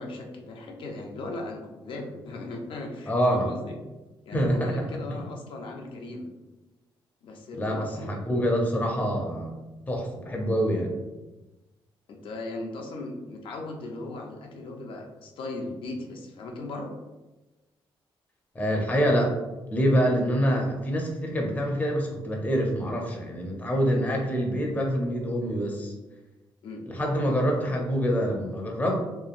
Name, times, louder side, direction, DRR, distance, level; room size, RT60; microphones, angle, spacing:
voice 1, 0.0-3.8 4.3-6.3 7.2-8.2 12.1-16.9 26.6-26.9, left 2 dB, 70° left, 2 dB, 0.5 m, -37 dB
voice 2, 3.1-3.4 4.3-4.8 5.1-5.2 7.6-9.5 9.9-10.9 18.5-19.3 19.7-25.9 26.9-29.0, equal, 20° left, 0 dB, 0.5 m, -26 dB
2.9 x 2.3 x 2.5 m, 1.1 s
cardioid pair, 100°, 9 cm